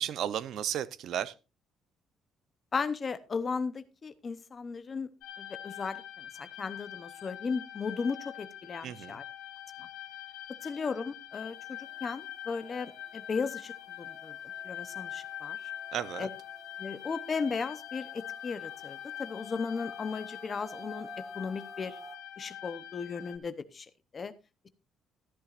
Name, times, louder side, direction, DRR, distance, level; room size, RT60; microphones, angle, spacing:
voice 1, 0.0-1.3 8.8-9.2 15.9-16.3, right 10 dB, 55° right, 0.7 m, -34 dB
voice 2, 2.7-5.1 5.4-9.2 9.8-9.9 10.6-14.4 14.6-15.6 16.2-16.3 16.8-21.9 22.4-24.3, left 5 dB, 25° left, 0.8 m, -36 dB
sound 1, 5.2-23.4, left 12 dB, 85° left, 1.3 m, -44 dB
sound 2, 11.3-22.2, left 1 dB, 10° left, 1.9 m, -52 dB
14.0 x 12.5 x 2.5 m
cardioid pair, 170°, 0 cm